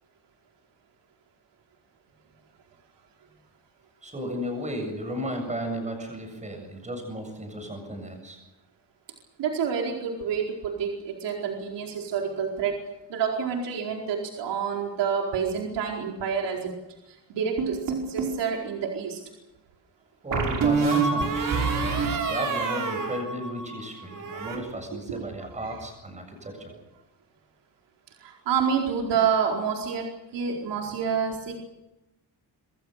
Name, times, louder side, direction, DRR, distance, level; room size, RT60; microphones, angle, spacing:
voice 1, 4.0-8.4 20.2-21.5 22.3-26.7, equal, 15° right, 5 dB, 7.4 m, -34 dB
voice 2, 9.4-12.8 13.1-16.7 17.3-19.2 24.5-24.6 25.1-25.2 25.6-25.8 26.7-26.8 28.2-30.1 30.3-31.6, right 7 dB, 85° right, 0 dB, 4.6 m, -28 dB
sound 1, 17.6-18.4 20.3-23.8 24.1-24.6, right 4 dB, 50° right, 5.8 m, -26 dB
27.0 x 22.5 x 6.6 m, 0.94 s
cardioid pair, 175°, 41 cm